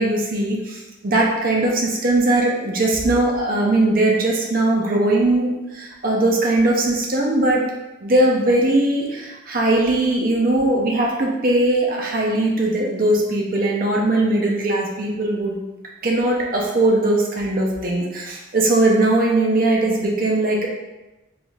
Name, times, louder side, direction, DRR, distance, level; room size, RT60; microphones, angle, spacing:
voice 1, 0.0-7.6 8.0-15.6 16.0-20.7, right 2 dB, 45° right, -1 dB, 0.7 m, -19 dB
4.3 x 3.4 x 2.4 m, 1.1 s
head